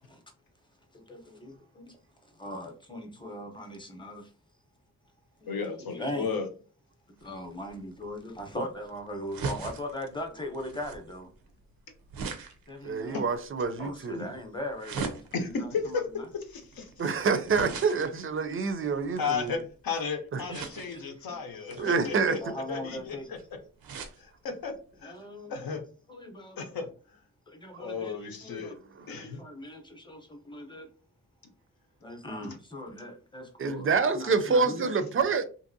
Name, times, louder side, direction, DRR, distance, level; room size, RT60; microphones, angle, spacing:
voice 1, 0.9-2.0 2.2-4.3 5.4-6.3 7.2-11.3 12.7-13.2 13.8-16.2 18.0-18.1 19.2-19.3 20.4-21.4 21.8-22.1 22.4-23.3 25.0-25.5 26.1-26.6 27.5-28.8 29.1-30.9 32.0-33.9 34.1-34.9, left 1 dB, 15° left, 0.7 m, -40 dB
voice 2, 5.5-6.5 13.1-13.2 14.1-14.2 15.3-16.0 16.3-17.1 17.6-17.7 19.2-22.4 22.7-23.4 24.2-24.7 25.0-25.2 25.5-25.8 26.6-27.2 27.8-28.7 29.1-29.4, left 5 dB, 85° left, 0.7 m, -34 dB
sound 1, 7.2-19.8 20.5-21.1 21.6-24.2 24.7-24.8 25.0-25.1, right 5 dB, 90° right, 0.5 m, -41 dB
voice 3, 12.8-14.2 17.0-19.6 20.3-20.4 21.8-22.4 33.6-35.4, right 5 dB, 40° right, 0.4 m, -27 dB
2.8 x 2.6 x 2.6 m
wide cardioid pair, 90°, 34 cm